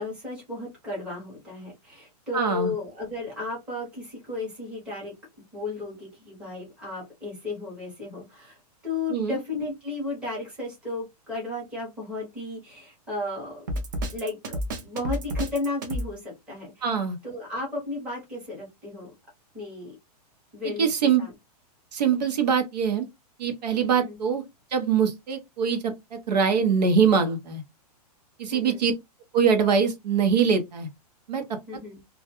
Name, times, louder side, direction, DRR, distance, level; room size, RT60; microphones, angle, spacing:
voice 1, 0.0-5.1 5.5-13.6 14.1-16.9 17.2-19.1 19.5-20.0 20.5-20.9 21.2-21.3 24.0-24.2 28.5-28.8 31.7-32.0, left 3 dB, 5° right, 0.8 m, -34 dB
voice 2, 2.3-2.7 9.1-9.4 16.8-17.2 20.8-21.2 21.9-23.1 23.4-24.4 24.7-27.6 28.4-28.9 29.3-30.9 31.3-31.4, right 6 dB, 85° right, 0.8 m, -23 dB
Drum kit, 13.7-16.1, equal, 30° right, 0.4 m, -30 dB
2.3 x 2.2 x 2.8 m
supercardioid pair, 180°, 21 cm